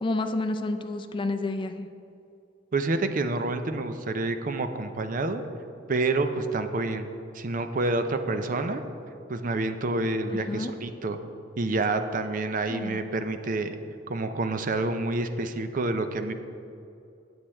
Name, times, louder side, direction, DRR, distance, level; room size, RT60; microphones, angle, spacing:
voice 1, 0.0-1.9 10.3-10.7 12.7-13.0, left 2 dB, 25° left, 7 dB, 0.4 m, -30 dB
voice 2, 2.7-5.4 5.9-7.1 7.3-8.8 9.3-11.2 11.6-13.7 14.1-16.3, right 2 dB, 45° right, 8 dB, 0.5 m, -28 dB
8.7 x 8.2 x 4.3 m, 2.6 s
head